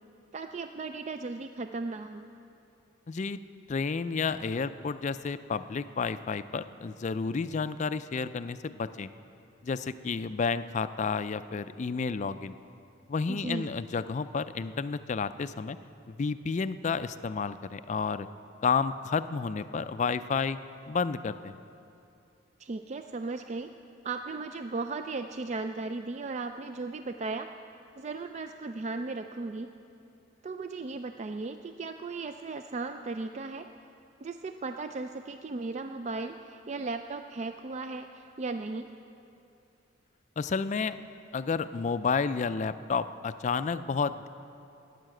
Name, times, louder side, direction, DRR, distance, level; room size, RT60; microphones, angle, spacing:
voice 1, 0.3-2.2 13.3-13.7 22.6-23.7 24.0-27.5 28.0-29.7 30.4-33.7 34.2-38.9, right 3 dB, 35° right, 7 dB, 0.3 m, -36 dB
voice 2, 3.1-3.4 3.7-9.1 9.6-12.6 13.1-15.8 16.1-18.3 18.6-20.6 20.9-21.5 40.4-41.0 41.3-44.3, left 5 dB, 35° left, 13 dB, 0.4 m, -31 dB
14.5 x 9.9 x 7.7 m, 2.8 s
head